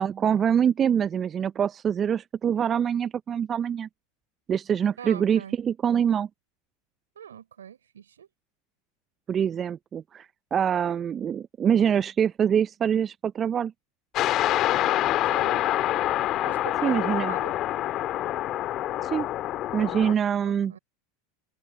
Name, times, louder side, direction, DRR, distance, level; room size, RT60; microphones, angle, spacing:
voice 1, 0.0-3.9 4.5-6.3 9.3-13.7 16.8-17.3 19.0-19.3 19.7-20.7, right 8 dB, 30° right, 0.6 m, -25 dB
voice 2, 5.0-5.6 7.1-8.3 15.2-15.7 16.4-17.5 20.4-20.8, right 9 dB, 80° right, 6.2 m, -42 dB
sound 1, 14.1-20.1, left 14 dB, 45° left, 1.9 m, -26 dB
open air
hypercardioid pair, 85°, 0 cm